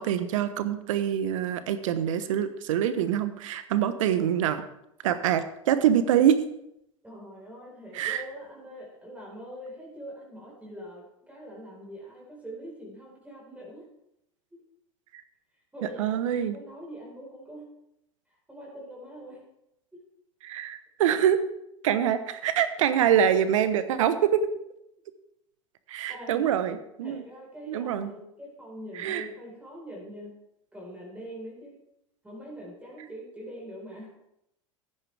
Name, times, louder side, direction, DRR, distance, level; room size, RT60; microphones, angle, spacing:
voice 1, 0.0-4.6 5.0-6.4 7.9-8.2 16.0-16.6 20.4-21.4 21.8-24.4 25.9-27.2 27.7-28.1 28.9-29.2, right 9 dB, 75° right, 12 dB, 1.0 m, -25 dB
voice 2, 7.0-13.9 15.7-16.2 16.5-17.7 18.5-19.5 19.9-20.0 26.1-26.5 27.0-30.4 30.7-31.7 32.2-34.1, equal, 10° right, -3 dB, 4.6 m, -43 dB
14.0 x 9.9 x 3.5 m, 0.81 s
hypercardioid pair, 90°, 17 cm